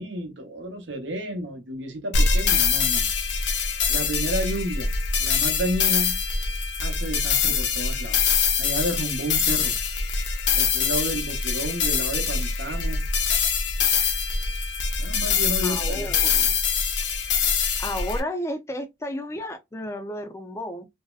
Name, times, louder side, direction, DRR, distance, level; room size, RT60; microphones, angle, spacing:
voice 1, 0.0-3.1 3.9-4.9 5.2-6.2 6.8-8.2 8.6-9.8 10.5-13.0 15.0-16.2, right 1 dB, 80° right, 0.8 m, -31 dB
sound 1, 2.1-18.2, left 5 dB, 70° left, 0.5 m, -24 dB
voice 2, 15.6-16.6 17.8-20.9, left 1 dB, 15° left, 0.4 m, -32 dB
2.7 x 2.0 x 2.3 m
head